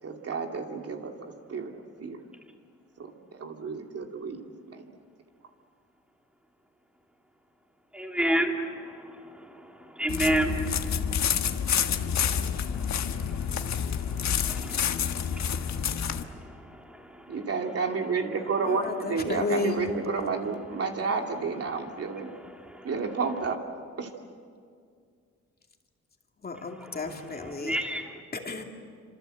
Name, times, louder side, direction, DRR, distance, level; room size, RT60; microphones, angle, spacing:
voice 1, 0.0-2.3 3.0-4.9 17.3-22.3 22.8-23.6 24.0-24.1, right 4 dB, 55° right, 3 dB, 2.6 m, -31 dB
voice 2, 7.9-17.4 22.7-22.9 26.8-27.0 27.4-28.1, right 1 dB, 5° right, 2 dB, 2.8 m, -33 dB
sound 1, 10.1-16.2, left 8 dB, 70° left, 1.4 m, -28 dB
voice 3, 18.7-19.8 21.1-21.2 26.4-27.8 28.3-28.6, left 3 dB, 30° left, 2 dB, 2.6 m, -32 dB
28.5 x 26.0 x 7.9 m, 2.1 s
wide cardioid pair, 145°, 29 cm